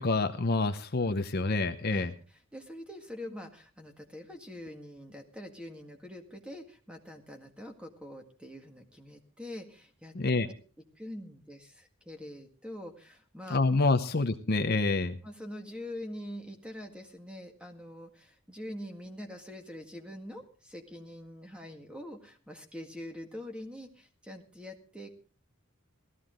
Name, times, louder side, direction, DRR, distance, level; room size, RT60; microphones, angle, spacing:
voice 1, 0.0-2.1 10.1-10.5 13.5-15.2, left 3 dB, 45° left, 8 dB, 0.8 m, -27 dB
voice 2, 1.9-10.2 10.8-13.6 15.2-25.1, left 1 dB, 5° right, 4 dB, 1.8 m, -44 dB
17.0 x 14.0 x 3.8 m, 0.38 s
head